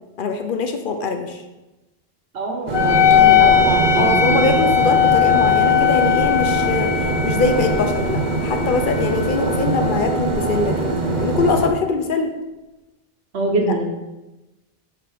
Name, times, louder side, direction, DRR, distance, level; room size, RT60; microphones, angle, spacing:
voice 1, 0.2-1.4 4.0-12.3, left 4 dB, 60° left, 6 dB, 0.8 m, -23 dB
voice 2, 2.3-4.2 13.3-14.0, right 2 dB, 80° right, 1 dB, 1.3 m, -23 dB
Wind instrument woodwind instrument, 2.7-11.7, left 9 dB, 40° left, 0.4 m, -19 dB
sound 1, 2.7-11.7, right 3 dB, 50° right, 0.8 m, -23 dB
6.8 x 3.6 x 4.9 m, 1.0 s
omnidirectional pair, 1.1 m